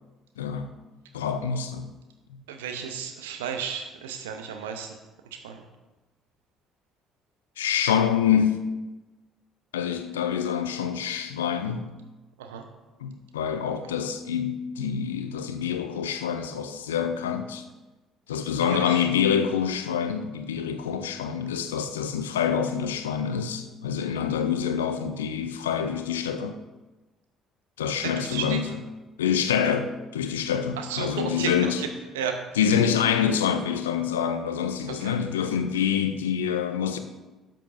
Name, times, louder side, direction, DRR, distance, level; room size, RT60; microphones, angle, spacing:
voice 1, 0.4-0.7 1.1-1.9 2.3-2.4 7.6-8.6 9.7-11.9 13.0-17.6 18.3-26.6 27.8-28.7 29.2-31.8 32.6-37.0, left 8 dB, 80° left, 0.5 m, -26 dB
voice 2, 2.5-5.0 5.3-5.6 12.4-12.6 18.3-19.1 28.0-28.8 30.8-31.9 32.1-32.4 35.0-35.1, right 7 dB, 75° right, 0.9 m, -33 dB
12.5 x 7.5 x 2.6 m
figure-of-eight pair, 50°, 0 cm